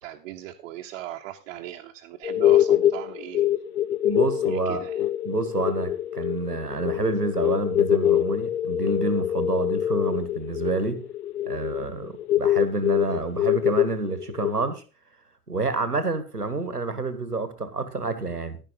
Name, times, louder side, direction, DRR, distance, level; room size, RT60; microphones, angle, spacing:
voice 1, 0.0-3.6 4.5-5.0, right 13 dB, 50° right, 2 dB, 1.0 m, -39 dB
sound 1, 2.2-14.7, left 11 dB, 75° left, 0.7 m, -24 dB
voice 2, 4.0-4.8 5.2-11.0 11.5-14.8 15.5-18.6, right 3 dB, 90° right, 13 dB, 1.3 m, -28 dB
11.0 x 10.5 x 3.9 m, 0.34 s
figure-of-eight pair, 85°, 45 cm